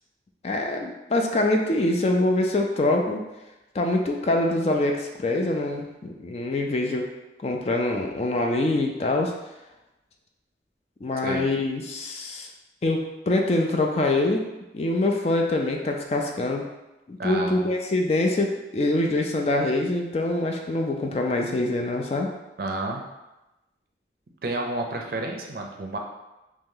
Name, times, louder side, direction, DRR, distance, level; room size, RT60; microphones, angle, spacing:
voice 1, 0.4-3.2 3.7-7.1 7.4-9.3 11.0-12.5 12.8-14.4 14.7-16.7 17.1-22.3, left 2 dB, 35° left, 2 dB, 0.4 m, -24 dB
voice 2, 17.2-17.7 22.6-23.0 24.4-26.0, right 2 dB, 55° right, 2 dB, 0.5 m, -30 dB
3.0 x 2.8 x 3.7 m, 1.0 s
head